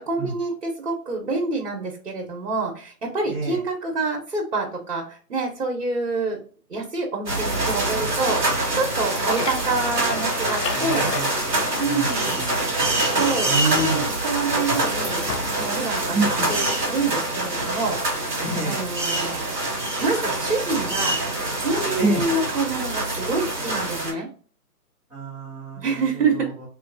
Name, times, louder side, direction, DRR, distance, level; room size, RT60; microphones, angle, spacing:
voice 1, 0.0-6.4 6.7-11.1 11.8-12.4 13.1-15.2 15.5-18.0 18.6-19.6 20.0-21.2 21.6-24.3 25.8-26.5, right 3 dB, 55° right, -1 dB, 1.1 m, -27 dB
sound 1, 7.2-24.1, right 2 dB, 10° right, 1.2 m, -25 dB
sound 2, 9.1-12.8 13.1-14.5 15.3-15.8, left 4 dB, 85° left, 0.8 m, -34 dB
voice 2, 10.7-11.2 11.9-12.0 12.3-13.1 13.4-14.1 16.1-16.5 18.4-18.8 22.0-22.2 25.1-26.0, right 2 dB, 5° left, -15 dB, 0.9 m, -27 dB
3.2 x 3.0 x 2.5 m, 0.42 s
figure-of-eight pair, 150°, 47 cm